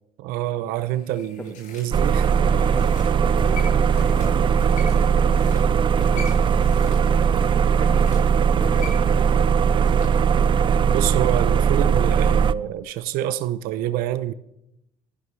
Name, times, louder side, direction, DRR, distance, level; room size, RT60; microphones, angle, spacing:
voice 1, 0.2-2.3 10.9-14.3, right 12 dB, 85° right, 0.7 m, -27 dB
sound 1, 0.8-10.2 10.5-10.6, left 5 dB, 60° left, 6.4 m, -41 dB
sound 2, 1.9-12.5, right 7 dB, 35° right, 0.4 m, -19 dB
voice 2, 2.4-7.2 7.8-9.7, left 2 dB, 10° left, 1.3 m, -38 dB
26.0 x 11.0 x 3.3 m
cardioid pair, 105°, 15 cm